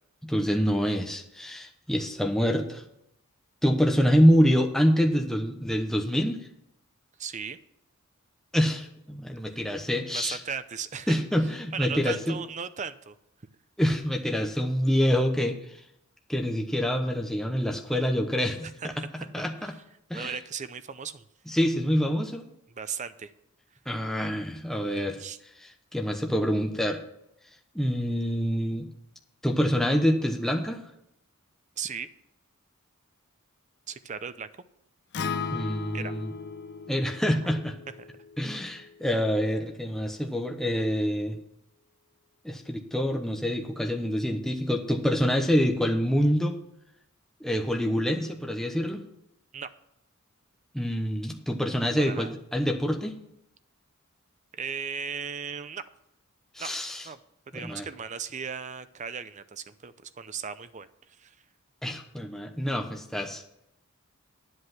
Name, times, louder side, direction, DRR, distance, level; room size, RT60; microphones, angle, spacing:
voice 1, 0.2-2.8 3.6-6.4 8.5-10.4 11.1-12.4 13.8-15.8 16.3-18.9 19.3-19.7 20.1-20.3 21.5-22.4 23.9-25.2 25.6-27.0 27.7-28.9 29.4-30.8 35.5-36.3 36.9-37.8 38.4-41.4 42.4-46.6 47.4-49.0 50.7-53.2 56.5-57.1 57.5-57.9 61.8-63.4, equal, ahead, 2 dB, 1.0 m, -26 dB
voice 2, 7.2-7.6 9.5-9.6 10.1-11.2 11.7-13.2 18.6-19.3 19.6-19.7 20.1-21.2 22.7-23.3 25.2-25.4 31.8-32.1 33.9-34.5 35.9-36.1 38.0-38.1 49.5-49.7 52.1-52.3 54.5-55.8 56.6-56.7 57.0-57.2 57.5-60.9 61.2-61.4, right 6 dB, 35° right, 12 dB, 0.6 m, -36 dB
Acoustic guitar, 35.1-39.4, left 5 dB, 50° left, 0.6 m, -37 dB
10.0 x 8.0 x 5.9 m, 0.78 s
head